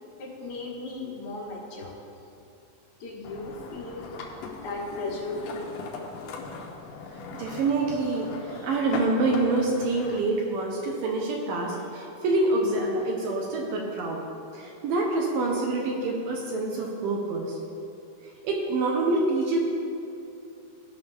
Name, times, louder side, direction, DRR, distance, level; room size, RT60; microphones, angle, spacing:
voice 1, 0.2-1.9 3.0-4.1 4.4-5.7, left 2 dB, 55° left, -5 dB, 2.8 m, -36 dB
sound 1, 3.2-10.2, left 4 dB, 75° left, 1.9 m, -39 dB
voice 2, 7.3-14.2 14.5-17.6 18.4-19.6, right 2 dB, 75° right, -1 dB, 2.2 m, -26 dB
15.5 x 5.7 x 3.5 m, 2.8 s
omnidirectional pair, 4.5 m